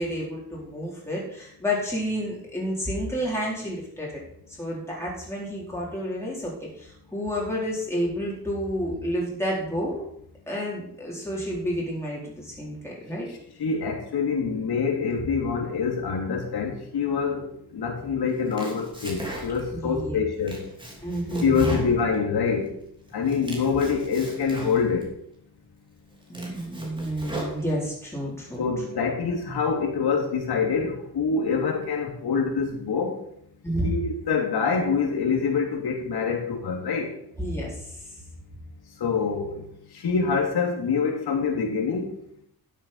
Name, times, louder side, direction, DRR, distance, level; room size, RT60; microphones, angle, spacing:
voice 1, 0.0-4.2 4.6-10.0 10.5-13.3 19.7-20.2 21.0-21.8 26.3-28.6 33.6-33.9 37.4-38.1, equal, 5° left, -5 dB, 4.4 m, -30 dB
voice 2, 13.3-20.6 21.4-22.7 23.1-25.1 28.6-33.2 33.8-37.1 39.0-39.6 39.9-42.1, left 5 dB, 80° left, 1 dB, 3.2 m, -25 dB
Domestic sounds home sounds, 18.3-19.8 20.2-22.7 23.1-25.1 25.6-25.7 26.1-28.1, right 1 dB, 15° right, 3.4 m, -39 dB
12.5 x 7.7 x 5.8 m, 0.71 s
wide cardioid pair, 120°, 38 cm